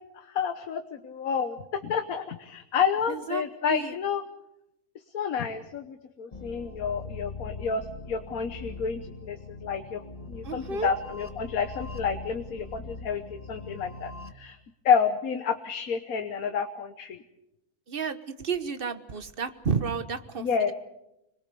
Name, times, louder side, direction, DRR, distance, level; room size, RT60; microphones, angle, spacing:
voice 1, 0.1-4.2 5.1-10.0 10.3-13.2 13.5-14.6 14.8-17.2 20.4-20.7, left 6 dB, 70° left, 8 dB, 1.5 m, -29 dB
voice 2, 3.1-3.9 10.4-10.9 17.9-20.7, right 6 dB, 40° right, 10 dB, 1.4 m, -32 dB
sound 1, 6.3-14.3, left 3 dB, 25° left, 1.4 m, -41 dB
26.5 x 21.5 x 6.9 m, 0.86 s
omnidirectional pair, 1.6 m